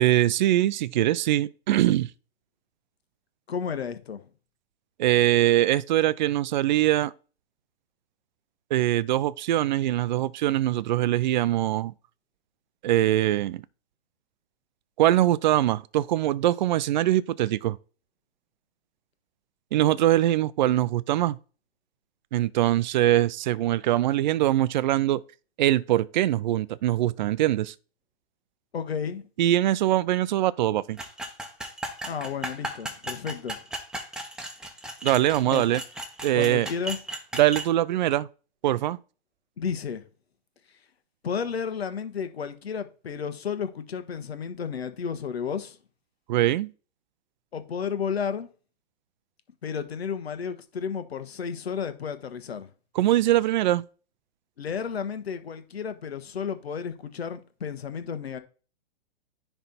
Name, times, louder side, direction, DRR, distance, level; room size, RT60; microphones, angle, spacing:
voice 1, 0.0-2.1 5.0-7.1 8.7-11.9 12.8-13.6 15.0-17.8 19.7-21.4 22.3-25.2 25.6-27.7 29.4-31.0 35.0-35.8 36.2-36.7 37.4-38.3 38.6-39.0 46.3-46.7 53.0-53.8, right 14 dB, 50° right, 0.5 m, -22 dB
voice 2, 3.5-4.2 28.7-29.3 32.1-33.6 35.4-35.6 36.3-37.0 39.6-40.0 41.2-45.8 47.5-48.5 49.6-52.7 54.6-58.4, left 6 dB, 80° left, 1.3 m, -32 dB
sound 1, 31.0-37.7, right 1 dB, ahead, 1.0 m, -36 dB
10.0 x 3.4 x 4.2 m
hypercardioid pair, 130°, 31 cm